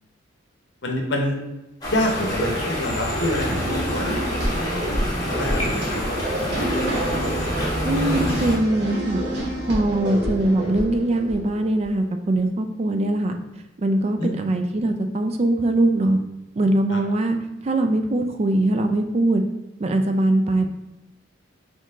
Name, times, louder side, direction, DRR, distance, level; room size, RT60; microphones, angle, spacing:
voice 1, 0.8-1.4 1.9-6.2 14.2-14.3, left 1 dB, 60° left, 1 dB, 0.7 m, -27 dB
sound 1, 1.8-8.6, equal, 20° left, 1.1 m, -26 dB
sound 2, 3.5-11.8, right 1 dB, 55° right, 1.2 m, -28 dB
voice 2, 7.8-13.3 13.8-16.2 16.6-17.4 17.6-19.4 19.8-20.7, right 1 dB, 30° right, 6 dB, 0.3 m, -22 dB
4.3 x 3.1 x 3.5 m, 0.96 s
head